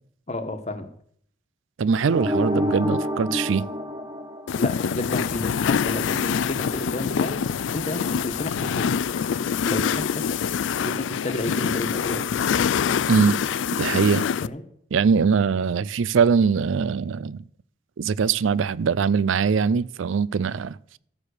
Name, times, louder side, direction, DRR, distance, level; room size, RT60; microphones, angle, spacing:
voice 1, 0.3-0.9 4.6-7.4 7.7-8.9 9.6-10.0 10.8-12.3 14.4-14.6, left 1 dB, 35° left, 1.3 m, -31 dB
voice 2, 1.8-3.7 13.1-13.4 13.8-14.3 14.9-17.4 18.0-20.8, right 5 dB, 85° right, 0.4 m, -22 dB
sound 1, 2.1-5.1, left 1 dB, 20° right, 0.9 m, -28 dB
sound 2, 4.5-14.5, left 7 dB, 75° left, 0.4 m, -25 dB
13.5 x 7.1 x 6.6 m
head